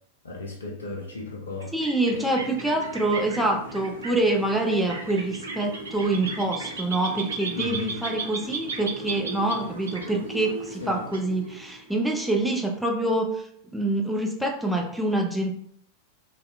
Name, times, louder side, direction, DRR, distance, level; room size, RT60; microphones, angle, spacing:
voice 1, 0.2-1.7 7.5-8.0 10.8-11.0, left 3 dB, 70° left, -1 dB, 0.5 m, -35 dB
sound 1, 1.5-11.9, right 3 dB, 70° right, 0.4 m, -36 dB
voice 2, 1.7-15.6, right 2 dB, ahead, 1 dB, 0.4 m, -26 dB
2.6 x 2.0 x 2.3 m, 0.68 s
figure-of-eight pair, 90°, 0 cm